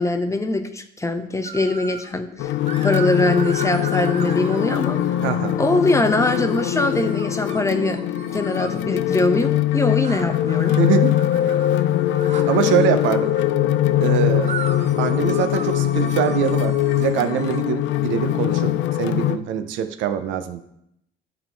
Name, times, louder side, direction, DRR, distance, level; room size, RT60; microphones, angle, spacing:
voice 1, 0.0-2.5 2.8-5.0 5.6-8.0 8.3-10.8, left 2 dB, 15° left, 8 dB, 0.8 m, -22 dB
sound 1, 1.4-2.1 2.7-5.4 6.2-8.8 10.0-13.5 14.4-17.6, right 5 dB, 35° right, 0.7 m, -36 dB
sound 2, 2.4-19.4, left 12 dB, 75° left, 0.5 m, -22 dB
voice 2, 5.2-5.6 10.8-11.1 12.5-13.3 14.0-14.5 15.0-20.6, right 9 dB, 80° right, 9 dB, 0.6 m, -23 dB
10.0 x 3.8 x 4.5 m, 0.78 s
supercardioid pair, 80°, 19 cm